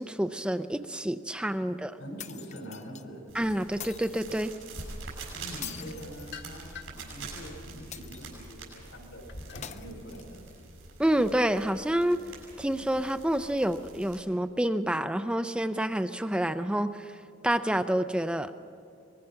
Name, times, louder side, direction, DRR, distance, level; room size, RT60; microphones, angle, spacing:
voice 1, 0.0-2.0 3.3-4.5 11.0-12.2 12.6-17.1 17.4-18.5, right 1 dB, 5° right, 10 dB, 0.4 m, -28 dB
voice 2, 2.0-3.2 5.3-10.4, equal, 85° left, 2 dB, 5.3 m, -44 dB
sound 1, 2.2-3.0 3.8-4.4 5.6-6.8 7.9-8.6 9.6-10.6, left 9 dB, 35° left, 0.6 m, -44 dB
sound 2, 3.3-14.2, right 3 dB, 85° right, 6.5 m, -45 dB
sound 3, 5.8-7.1 7.6-9.9, left 3 dB, 60° left, 1.4 m, -46 dB
24.0 x 21.0 x 5.8 m, 2.6 s
head